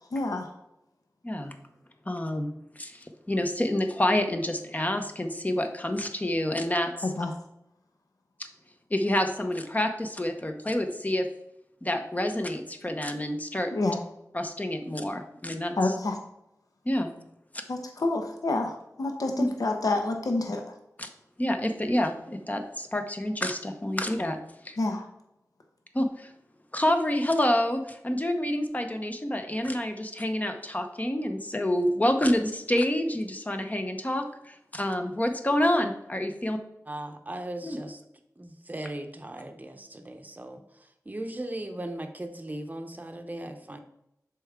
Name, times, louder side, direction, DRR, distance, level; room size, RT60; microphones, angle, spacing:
voice 1, 0.1-0.5 7.0-7.3 13.7-14.0 15.8-16.2 17.7-20.7 24.8-25.1, left 2 dB, 70° left, 3 dB, 0.8 m, -28 dB
voice 2, 1.2-1.5 2.1-2.5 2.8-6.9 8.9-11.3 11.8-13.7 14.3-15.7 16.9-17.1 17.5-17.6 19.4-19.5 21.0-21.1 21.4-24.4 24.6-24.7 25.9-26.3 26.7-36.6 37.6-37.8, left 1 dB, 25° left, 6 dB, 0.8 m, -28 dB
voice 3, 36.9-38.0 38.4-43.8, right 1 dB, 25° right, 6 dB, 0.7 m, -38 dB
6.9 x 4.6 x 3.6 m, 0.82 s
wide cardioid pair, 70°, 6 cm